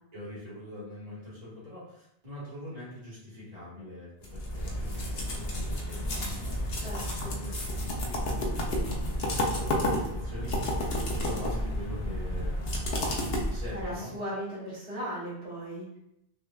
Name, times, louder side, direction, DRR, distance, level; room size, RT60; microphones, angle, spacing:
voice 1, 0.1-10.8 11.2-12.6 13.5-14.1, left 1 dB, 35° right, -9 dB, 1.7 m, -43 dB
sound 1, 4.2-14.0, left 1 dB, 65° left, 1.0 m, -31 dB
voice 2, 6.7-7.4 13.7-15.9, equal, 60° right, -8 dB, 1.9 m, -37 dB
6.1 x 2.4 x 2.3 m, 0.77 s
omnidirectional pair, 1.1 m